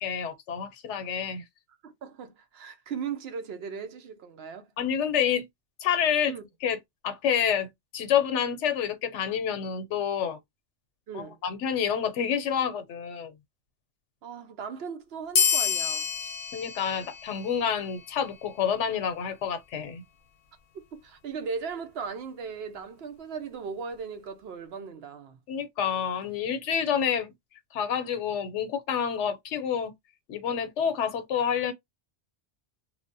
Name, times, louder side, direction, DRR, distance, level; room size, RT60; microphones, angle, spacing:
voice 1, 0.0-1.4 4.8-5.4 5.8-6.3 6.6-6.8 7.0-10.4 11.1-13.3 16.5-20.0 25.5-27.3 27.7-29.9 30.3-31.7, left 8 dB, 85° left, 1.0 m, -28 dB
voice 2, 1.8-4.7 6.3-6.4 11.1-11.4 14.2-16.1 20.9-25.4, right 6 dB, 65° right, 0.8 m, -37 dB
sound 1, 15.3-18.4, left 7 dB, 55° left, 0.7 m, -29 dB
3.1 x 2.0 x 2.6 m
omnidirectional pair, 1.2 m